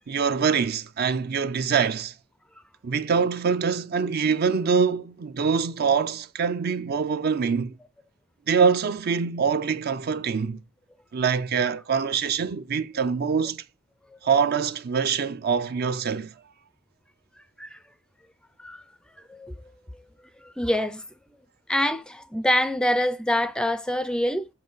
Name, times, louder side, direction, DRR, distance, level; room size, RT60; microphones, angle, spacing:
voice 1, 0.1-2.1 2.8-7.7 8.5-10.6 11.1-13.6 14.2-16.3, right 6 dB, 50° right, 0.5 m, -24 dB
voice 2, 20.4-21.0 21.7-24.5, left 1 dB, 5° left, 0.4 m, -25 dB
7.3 x 5.2 x 3.9 m
head